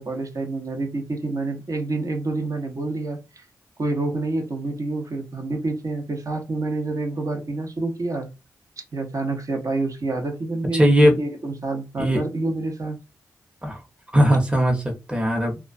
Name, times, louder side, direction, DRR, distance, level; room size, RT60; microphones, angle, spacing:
voice 1, 0.0-3.5 3.8-8.3 8.9-13.0, right 2 dB, 50° right, 0.8 m, -28 dB
voice 2, 10.7-11.2 12.0-12.2 13.6-13.8 14.1-15.6, equal, 15° right, 0.9 m, -18 dB
2.3 x 2.2 x 2.5 m
cardioid pair, 45°, 7 cm